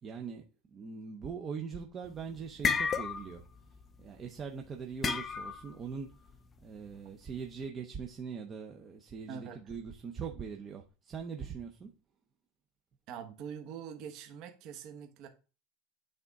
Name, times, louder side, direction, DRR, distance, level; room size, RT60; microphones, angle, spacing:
voice 1, 0.0-3.4 4.0-6.2 6.6-11.9, right 6 dB, 20° right, 0.6 m, -42 dB
sound 1, 2.1-4.0 5.0-5.7, left 5 dB, 20° left, 0.4 m, -31 dB
voice 2, 9.3-9.6 13.1-15.3, right 7 dB, 40° right, 1.1 m, -44 dB
8.8 x 4.0 x 3.6 m
supercardioid pair, 165°, 0 cm